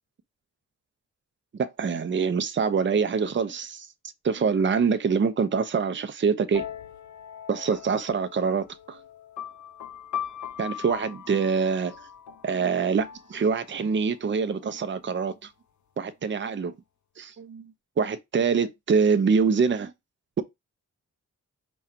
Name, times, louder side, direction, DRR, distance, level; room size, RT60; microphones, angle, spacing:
voice 1, 1.6-3.9 4.2-6.6 7.5-9.0 10.6-12.1 12.4-15.5 16.0-16.7 17.2-19.9, right 5 dB, 40° right, 0.5 m, -25 dB
sound 1, 6.5-14.1, left 9 dB, 65° left, 0.6 m, -40 dB
4.9 x 2.3 x 4.2 m
wide cardioid pair, 90°, 31 cm